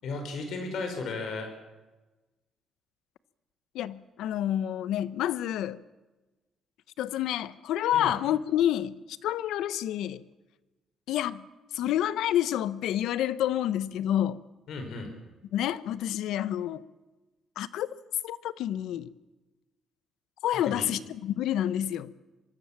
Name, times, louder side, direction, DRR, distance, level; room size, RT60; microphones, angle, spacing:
voice 1, 0.0-1.5 7.9-8.1 14.7-15.1 20.6-20.9, left 3 dB, 65° left, 5.2 m, -34 dB
voice 2, 3.7-5.8 7.0-10.2 11.1-11.5 11.7-14.4 15.5-16.8 17.6-17.9 18.2-19.1 20.4-22.1, left 11 dB, 85° left, 1.1 m, -29 dB
24.5 x 23.5 x 7.4 m
cardioid pair, 150°, 0 cm